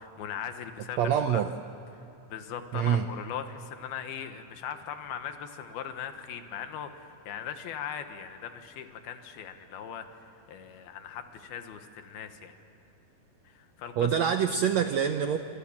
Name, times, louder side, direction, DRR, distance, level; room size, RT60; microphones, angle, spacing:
voice 1, 0.0-1.4 1.9-2.0 2.3-12.6 13.4-14.1, left 8 dB, 85° left, 7 dB, 3.4 m, -39 dB
voice 2, 1.0-1.5 2.7-3.0 14.0-15.4, right 8 dB, 80° right, 7 dB, 1.5 m, -25 dB
28.5 x 26.0 x 7.4 m, 3.0 s
omnidirectional pair, 4.2 m